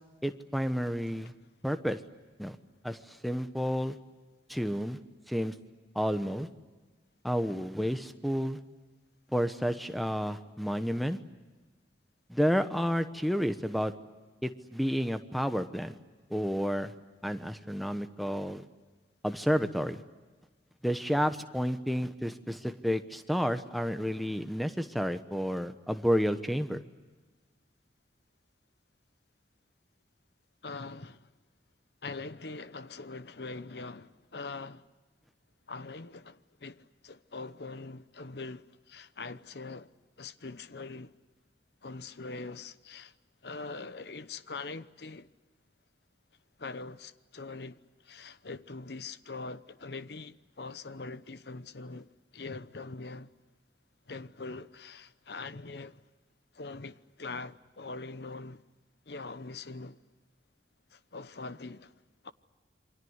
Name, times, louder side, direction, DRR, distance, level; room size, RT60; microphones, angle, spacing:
voice 1, 0.2-1.3 1.6-2.0 2.4-2.6 2.8-4.0 4.5-5.0 5.3-5.5 5.9-6.5 7.2-8.6 9.3-11.2 12.3-13.9 14.4-15.9 16.3-16.9 17.2-18.6 19.2-20.0 20.8-26.8, equal, ahead, 1.0 m, -30 dB
voice 2, 30.6-31.3 32.0-34.9 35.7-39.9 40.2-41.1 41.8-43.1 43.4-45.3 46.6-53.3 54.1-56.0 56.5-58.7 59.1-60.0 60.9-61.9 62.2-62.3, left 3 dB, 70° left, 0.9 m, -43 dB
28.5 x 24.5 x 8.1 m
head